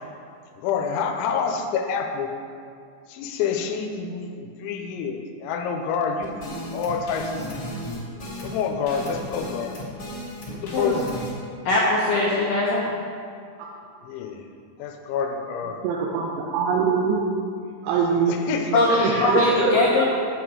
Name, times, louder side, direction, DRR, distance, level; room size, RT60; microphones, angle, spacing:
voice 1, 0.6-2.3 3.1-7.6 8.4-9.8 10.5-11.2 14.0-14.5 14.8-15.8 17.9-18.0 18.3-19.3, left 6 dB, 90° left, 4 dB, 3.0 m, -28 dB
sound 1, 6.2-11.3, left 1 dB, 35° left, 2.1 m, -35 dB
voice 2, 11.7-12.9 18.7-20.1, left 1 dB, 75° left, -4 dB, 2.0 m, -20 dB
voice 3, 15.8-17.2 17.8-18.4 19.6-20.1, right 5 dB, 80° right, -3 dB, 2.8 m, -23 dB
8.6 x 7.9 x 4.6 m, 2.3 s
omnidirectional pair, 5.2 m